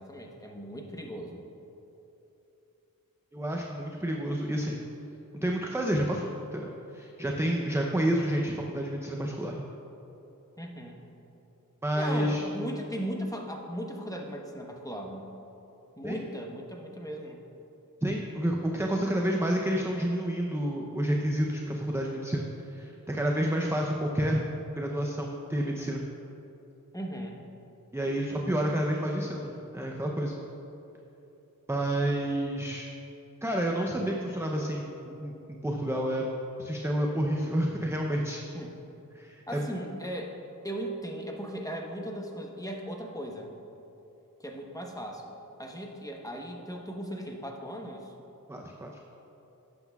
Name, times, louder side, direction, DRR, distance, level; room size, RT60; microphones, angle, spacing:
voice 1, 0.0-1.4 10.6-11.0 11.9-15.3 16.0-17.4 26.9-27.4 38.5-38.7 39.5-40.4 40.6-43.5 44.4-45.2 45.6-48.1, equal, 10° left, 0 dB, 0.9 m, -37 dB
voice 2, 3.3-4.8 5.4-9.6 11.8-12.4 16.0-16.2 18.0-24.4 24.8-26.0 27.9-30.3 31.7-32.9 33.4-35.3 35.6-36.2 36.6-38.4 39.1-39.6 48.5-48.9, right 1 dB, 10° right, 0 dB, 0.5 m, -29 dB
11.5 x 7.9 x 2.3 m, 3.0 s
wide cardioid pair, 55°, 35 cm